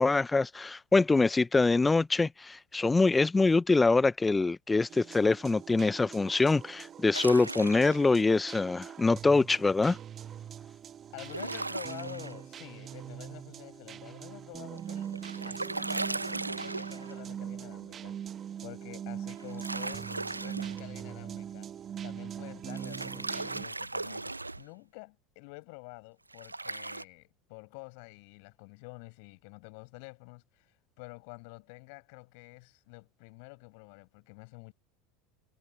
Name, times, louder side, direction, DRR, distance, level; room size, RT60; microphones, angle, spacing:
voice 1, 0.0-10.0, left 3 dB, 15° left, 0.8 m, -24 dB
sound 1, 4.9-23.6, right 9 dB, 35° right, 1.5 m, -42 dB
sound 2, 7.1-8.1 11.2-12.3 14.8-17.2 19.4-20.8 22.7-24.6 26.3-27.0, right 2 dB, 90° right, 1.3 m, -37 dB
voice 2, 11.1-18.2 18.6-20.1 20.4-21.7 22.0-34.7, left 34 dB, 55° left, 7.9 m, -49 dB
figure-of-eight pair, 75°, 0 cm